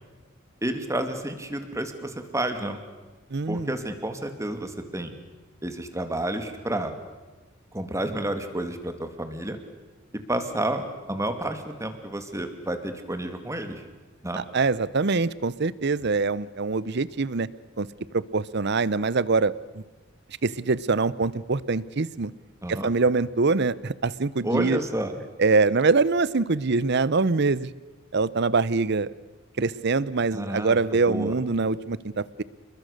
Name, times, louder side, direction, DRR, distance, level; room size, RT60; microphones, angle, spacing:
voice 1, 0.6-2.8 3.5-5.1 5.6-6.9 7.7-9.6 10.3-13.8 14.2-14.4 22.6-22.9 24.4-25.2 30.3-31.3, right 1 dB, 15° right, 7 dB, 2.4 m, -30 dB
voice 2, 3.3-3.7 14.4-17.5 17.8-17.9 18.1-19.8 20.4-22.3 22.7-24.8 25.4-27.7 28.1-29.1 29.6-32.4, right 4 dB, 55° right, 19 dB, 0.7 m, -24 dB
29.5 x 21.5 x 6.7 m, 1.2 s
head